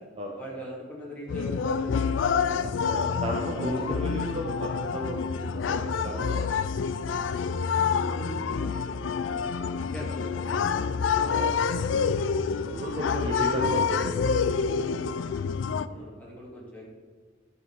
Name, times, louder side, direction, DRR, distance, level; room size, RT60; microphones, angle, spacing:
voice 1, 0.3-4.0 7.4-10.9 11.3-14.0 14.9-16.9, equal, 10° left, -5 dB, 2.4 m, -42 dB
sound 1, 1.3-15.9, left 6 dB, 80° left, 0.4 m, -27 dB
voice 2, 2.8-6.5 10.6-11.5 12.6-14.2 15.8-16.1, right 1 dB, 30° right, -1 dB, 1.1 m, -34 dB
11.5 x 5.9 x 4.7 m, 1.5 s
head